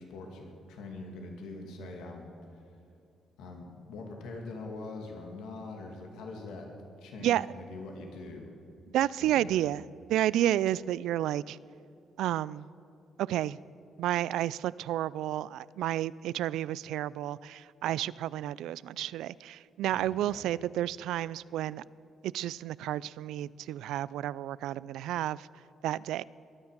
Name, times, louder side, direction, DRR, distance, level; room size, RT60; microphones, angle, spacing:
voice 1, 0.0-2.6 3.4-6.7 7.0-8.5 9.2-9.7 19.9-20.4, left 3 dB, 90° left, 2 dB, 2.3 m, -43 dB
voice 2, 8.9-9.8 10.1-11.6 12.2-12.7 13.2-13.6 14.0-21.8 22.2-25.5 25.8-26.2, right 13 dB, 85° right, 20 dB, 0.3 m, -31 dB
22.0 x 9.7 x 6.6 m, 2.6 s
cardioid pair, 90°, 0 cm